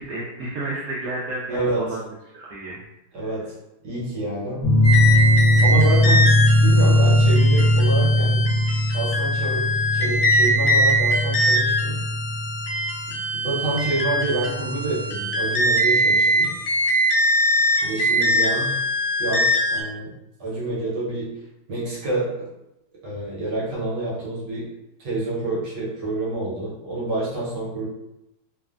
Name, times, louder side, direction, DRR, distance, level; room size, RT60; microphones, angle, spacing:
voice 1, 0.0-2.0 2.3-2.8 3.2-3.3 17.8-18.7, right 2 dB, 80° right, -7 dB, 0.8 m, -32 dB
voice 2, 1.5-1.9 3.1-3.5 3.8-4.7 5.6-8.5 8.9-12.0 13.1-16.5 17.8-18.8 19.2-20.1 20.4-21.3 21.7-22.5 23.0-24.7 25.0-27.9, right 2 dB, 65° right, -7 dB, 1.4 m, -28 dB
sound 1, 4.6-15.8, equal, 45° left, 1.1 m, -20 dB
sound 2, 4.8-19.8, equal, 85° left, 0.7 m, -22 dB
3.2 x 2.1 x 2.4 m, 0.88 s
omnidirectional pair, 2.1 m